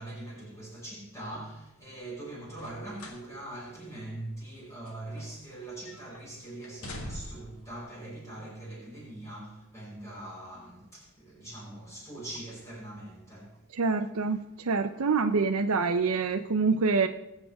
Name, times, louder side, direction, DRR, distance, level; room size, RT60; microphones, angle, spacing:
voice 1, 0.0-13.8, right 1 dB, 15° left, 5.4 m, -42 dB
sound 1, 2.5-3.3 3.7-3.8 4.5-5.6 5.9-6.2 6.6-7.6 8.4-8.6, left 1 dB, 85° left, 2.1 m, -43 dB
voice 2, 13.7-17.1, right 4 dB, 85° right, 0.6 m, -26 dB
21.0 x 7.7 x 3.5 m
head